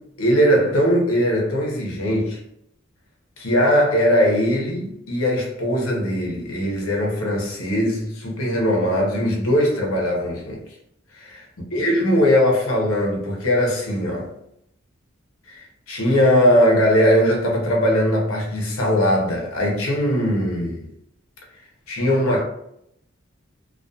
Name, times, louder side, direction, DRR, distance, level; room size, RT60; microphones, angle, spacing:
voice 1, 0.2-2.4 3.4-10.6 11.1-11.5 11.7-14.3 15.5-20.9 21.9-22.4, equal, 90° left, 0.7 m, -20 dB
2.3 x 2.3 x 2.6 m
head